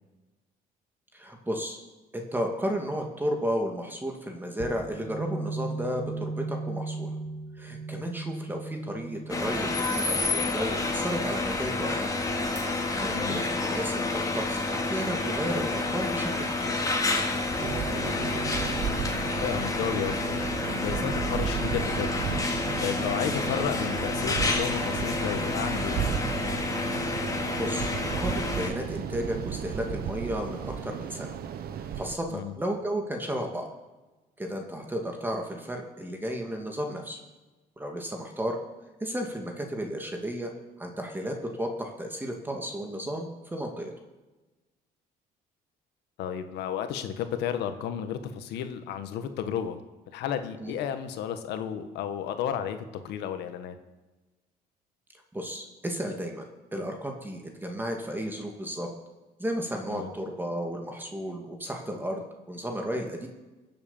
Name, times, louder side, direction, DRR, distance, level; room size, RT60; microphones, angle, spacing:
voice 1, 1.1-1.8 2.1-7.2 7.6-12.1 12.9-16.7 21.3-21.4 27.3-27.9 28.2-31.3 31.8-33.7 34.4-37.2 37.8-38.6 39.0-40.5 40.8-43.9 50.6-50.8 55.3-56.4 56.7-58.9 59.4-62.2 62.5-63.3, equal, 10° right, 2 dB, 2.4 m, -33 dB
sound 1, 4.6-10.8 12.6-15.3 17.6-18.7, right 3 dB, 45° right, 2.7 m, -38 dB
sound 2, 9.3-28.7, left 3 dB, 20° left, 2.7 m, -29 dB
sound 3, 17.6-32.2, right 8 dB, 65° right, 1.2 m, -34 dB
voice 2, 19.4-20.4 20.8-22.2 22.8-26.0 32.3-32.5 46.2-49.8 50.1-53.8 59.9-60.1, left 9 dB, 85° left, 8 dB, 1.5 m, -32 dB
23.0 x 7.9 x 7.3 m, 1.2 s
cardioid pair, 110°, 17 cm